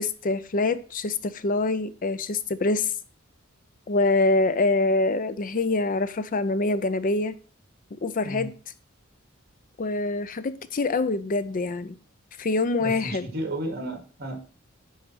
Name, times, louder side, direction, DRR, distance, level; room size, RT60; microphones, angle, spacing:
voice 1, 0.0-2.9 3.9-7.4 7.9-8.5 9.8-12.0 12.4-13.3, left 2 dB, 40° left, 0.5 m, -25 dB
voice 2, 12.8-14.4, right 1 dB, 50° right, 2.1 m, -33 dB
10.0 x 4.2 x 6.1 m
head